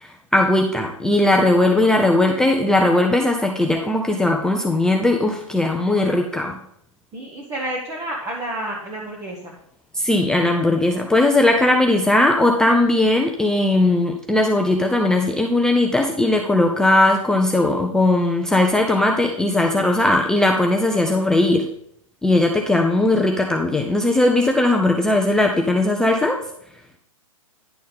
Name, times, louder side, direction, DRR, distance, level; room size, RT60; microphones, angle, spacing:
voice 1, 0.0-6.6 9.9-21.7 22.2-26.4, left 2 dB, 5° left, 2 dB, 0.4 m, -18 dB
voice 2, 7.1-9.5, right 1 dB, 20° right, -3 dB, 1.4 m, -30 dB
10.0 x 4.2 x 5.4 m, 0.71 s
hypercardioid pair, 125°, 18 cm